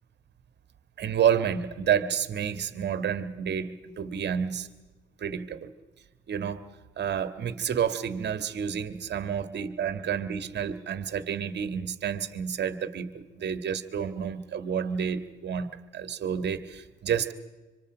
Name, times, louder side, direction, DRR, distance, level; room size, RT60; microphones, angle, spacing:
voice 1, 1.0-4.7 5.2-5.7 6.3-6.7 7.0-15.7 15.9-17.3, right 8 dB, 60° right, 11 dB, 1.7 m, -29 dB
26.0 x 26.0 x 5.1 m, 1.2 s
cardioid pair, 90°, 20 cm